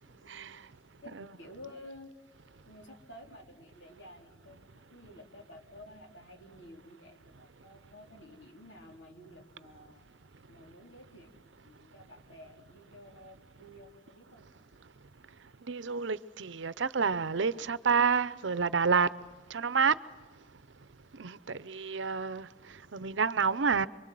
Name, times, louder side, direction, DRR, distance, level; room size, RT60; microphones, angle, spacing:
voice 1, 0.1-0.7 1.0-2.1 2.7-10.1 10.5-11.3 11.6-14.5, left 1 dB, 75° left, 3.8 m, -52 dB
voice 2, 15.7-19.1 19.5-19.9 21.2-22.5 22.9-23.9, right 5 dB, 75° right, 0.7 m, -28 dB
26.5 x 24.5 x 7.6 m
head